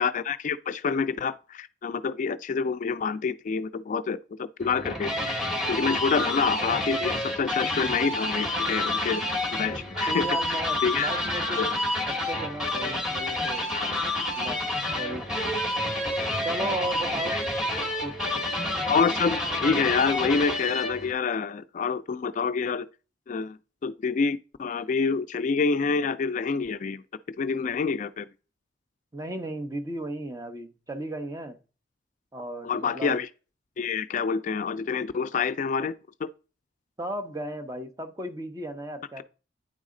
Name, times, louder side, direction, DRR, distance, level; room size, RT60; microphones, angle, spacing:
voice 1, 0.0-5.3 5.7-9.2 9.5-11.1 11.5-11.7 13.7-14.0 15.9-16.0 17.3-17.4 18.9-22.9 23.3-27.0 27.4-28.3 32.6-33.3 33.8-35.9 36.2-36.3, left 5 dB, 45° left, 0.3 m, -27 dB
sound 1, 4.6-21.1, left 1 dB, 5° right, 1.8 m, -29 dB
voice 2, 10.1-11.8 12.1-13.6 14.4-14.6 15.0-15.2 16.4-17.4 18.0-18.4 29.1-31.6 32.3-33.2 37.0-39.2, right 1 dB, 20° right, 0.7 m, -35 dB
9.4 x 4.1 x 3.7 m
head